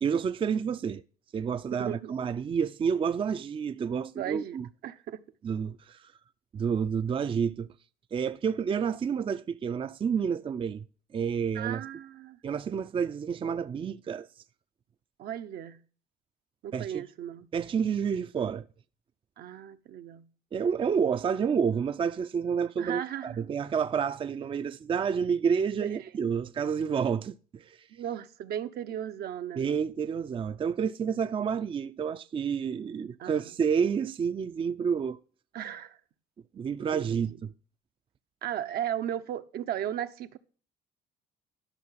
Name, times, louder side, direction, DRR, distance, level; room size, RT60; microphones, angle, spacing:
voice 1, 0.0-1.0 1.3-4.7 5.4-6.1 6.5-7.7 8.1-10.8 11.1-11.8 12.4-14.3 16.7-17.0 17.5-18.7 20.5-27.9 29.6-35.2 36.5-37.5, right 7 dB, 30° right, 0.5 m, -29 dB
voice 2, 1.8-2.1 4.2-4.6 4.8-5.2 11.5-12.4 15.2-15.8 16.6-17.5 19.4-20.3 22.8-23.4 25.8-26.1 27.9-29.7 33.2-33.5 35.5-36.0 36.9-37.2 38.4-40.4, right 10 dB, 70° right, 0.9 m, -36 dB
12.5 x 6.0 x 5.7 m
cardioid pair, 110°, 17 cm